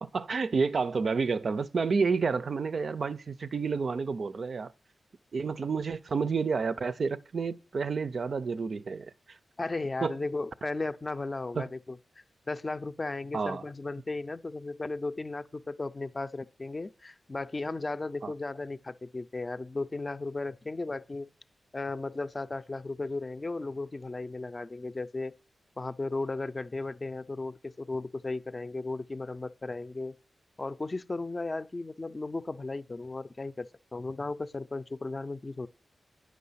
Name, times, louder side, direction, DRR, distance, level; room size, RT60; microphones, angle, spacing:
voice 1, 0.0-4.7 5.3-9.4 10.0-10.2 11.5-11.7 13.3-13.7 18.2-18.3, right 5 dB, 60° right, 0.4 m, -30 dB
voice 2, 9.6-12.0 12.5-21.3 21.7-25.3 25.8-30.1 30.6-35.7, left 3 dB, 30° left, 0.5 m, -35 dB
9.3 x 6.2 x 5.6 m
cardioid pair, 70°, 0 cm